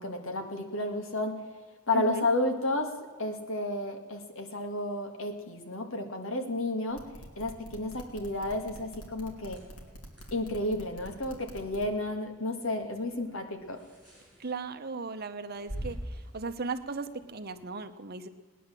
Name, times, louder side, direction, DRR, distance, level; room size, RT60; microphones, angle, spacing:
voice 1, 0.0-1.4 1.9-7.1 7.4-9.6 10.3-13.8, left 2 dB, 65° left, 5 dB, 2.0 m, -32 dB
voice 2, 1.9-2.3 14.4-16.0 16.3-18.3, right 4 dB, 45° right, 9 dB, 0.9 m, -36 dB
sound 1, 6.9-11.8, right 1 dB, 85° left, 2.8 m, -46 dB
sound 2, 9.3-17.7, right 1 dB, 5° left, 6.5 m, -47 dB
18.0 x 10.0 x 7.6 m, 1.5 s
head